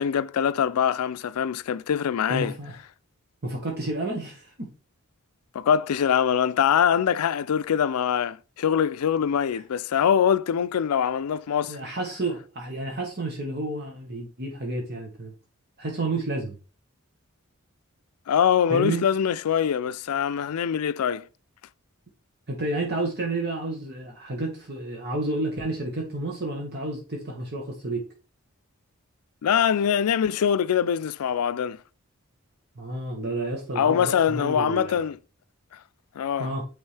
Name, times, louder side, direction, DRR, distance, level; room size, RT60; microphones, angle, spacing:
voice 1, 0.0-2.5 5.5-11.8 18.3-21.3 29.4-31.8 33.8-35.2 36.2-36.5, left 8 dB, 85° left, 0.4 m, -23 dB
voice 2, 2.3-2.8 3.4-4.7 11.7-15.3 15.8-16.6 18.7-19.1 22.5-28.0 32.7-35.0 36.4-36.6, right 2 dB, 50° right, 1.4 m, -30 dB
8.8 x 3.6 x 3.3 m
head